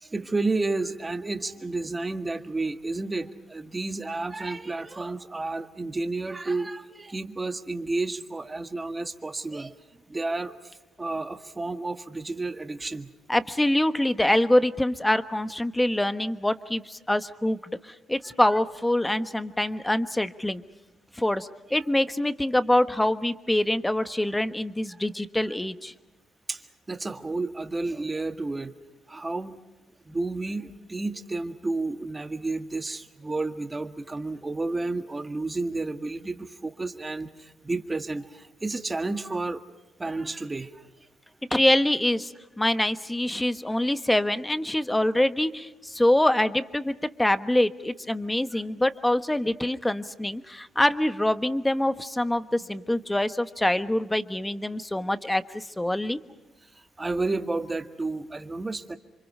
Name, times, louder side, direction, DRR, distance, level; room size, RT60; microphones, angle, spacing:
voice 1, 0.0-9.7 10.1-10.7 11.0-13.1 18.3-18.4 24.9-25.0 26.5-28.7 29.1-29.5 30.1-39.6 40.0-40.9 48.5-48.6 56.7-59.0, right 3 dB, 20° right, 7 dB, 1.7 m, -31 dB
voice 2, 13.3-20.6 21.2-25.9 41.5-56.2, left 1 dB, 10° left, 10 dB, 1.2 m, -25 dB
28.5 x 25.0 x 5.5 m, 1.1 s
cardioid pair, 90°, 0 cm